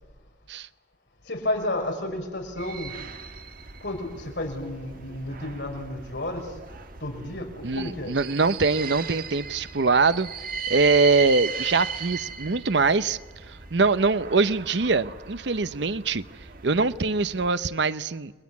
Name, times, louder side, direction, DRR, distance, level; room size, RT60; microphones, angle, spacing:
voice 1, 1.2-3.1 3.8-6.6 7.0-8.2, left 1 dB, 65° left, 5.6 m, -32 dB
sound 1, 2.6-17.5, right 5 dB, 50° right, 1.4 m, -38 dB
voice 2, 7.6-10.3 10.7-13.2 13.5-16.2 16.6-18.3, right 4 dB, 65° right, 0.8 m, -23 dB
30.0 x 21.5 x 8.5 m
head